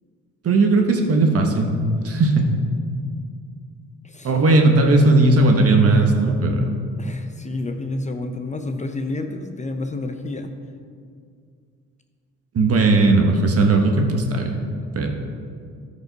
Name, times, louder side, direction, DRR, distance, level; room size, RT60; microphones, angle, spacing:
voice 1, 0.4-1.7 2.0-2.4 4.2-6.7 12.5-14.6 14.9-15.1, right 2 dB, 50° right, 3 dB, 1.3 m, -17 dB
voice 2, 7.0-10.5, left 2 dB, 25° left, 6 dB, 0.6 m, -29 dB
13.0 x 5.3 x 4.0 m, 2.2 s
cardioid pair, 90°, 30 cm